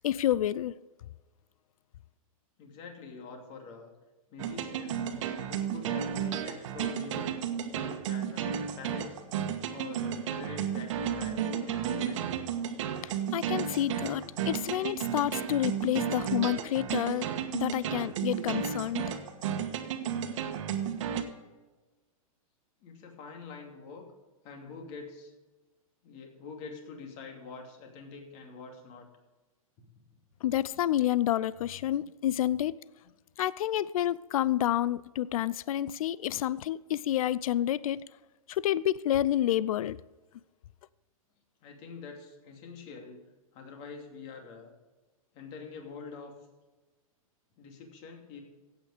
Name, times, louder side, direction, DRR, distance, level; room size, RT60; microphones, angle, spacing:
voice 1, 0.0-0.7 13.0-19.1 30.4-32.8 33.4-38.0 38.5-40.0, left 12 dB, 75° left, 20 dB, 0.5 m, -29 dB
voice 2, 2.6-3.9 4.3-5.1 5.5-7.3 7.6-9.2 9.7-12.4 22.8-24.1 24.4-25.3 26.0-29.1 29.8-30.0 41.6-43.2 43.5-44.7 45.3-46.3 47.6-48.4, left 4 dB, 35° left, 3 dB, 2.8 m, -45 dB
sound 1, 4.4-21.2, right 8 dB, 60° right, 1.6 m, -33 dB
15.0 x 8.8 x 5.1 m, 1.2 s
hypercardioid pair, 140°, 18 cm